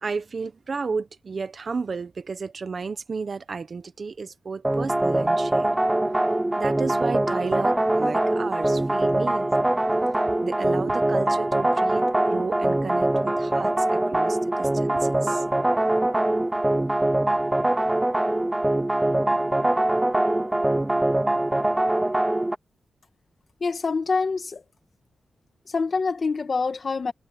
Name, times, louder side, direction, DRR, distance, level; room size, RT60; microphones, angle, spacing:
voice 1, 0.0-5.7 6.6-9.8 10.4-15.4, right 4 dB, 40° right, 1.0 m, -32 dB
the bleeps, 4.6-22.6, right 1 dB, 10° right, 0.4 m, -23 dB
voice 2, 23.6-24.6 25.7-27.1, left 4 dB, 40° left, 1.9 m, -25 dB
wide cardioid pair, 160°, 0 cm